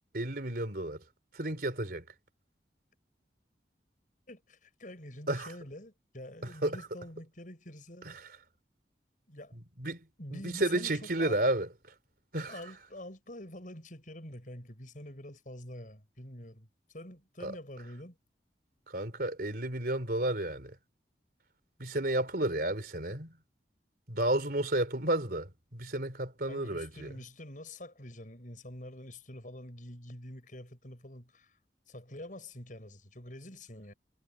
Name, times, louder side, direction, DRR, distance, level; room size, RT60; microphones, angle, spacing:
voice 1, 0.1-1.0 1.3-2.0 5.3-5.5 6.6-6.8 8.0-8.2 9.8-10.1 10.3-11.7 12.3-12.6 17.4-17.5 18.9-20.8 21.8-23.4 24.1-27.1, right 1 dB, 55° right, 3.8 m, -32 dB
voice 2, 4.3-8.1 9.3-9.6 10.2-11.4 12.5-18.2 26.5-31.6 31.9-33.9, left 1 dB, 50° left, 7.6 m, -46 dB
head